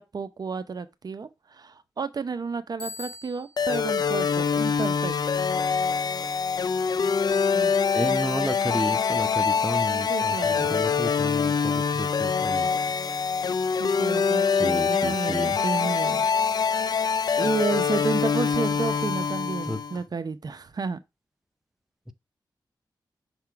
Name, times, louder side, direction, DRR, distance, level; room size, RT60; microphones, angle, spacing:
voice 1, 0.0-5.4 7.5-7.8 10.1-11.0 13.8-16.3 16.7-16.8 17.4-21.0, right 4 dB, 50° right, 0.7 m, -32 dB
Bicycle bell, 2.8-3.8, left 3 dB, 10° left, 3.5 m, -40 dB
sound 1, 3.6-20.0, left 6 dB, 55° left, 0.4 m, -24 dB
voice 2, 7.9-12.8 14.5-15.5 19.7-19.8, equal, 5° right, 0.6 m, -32 dB
5.9 x 3.6 x 4.5 m
cardioid pair, 70°, 8 cm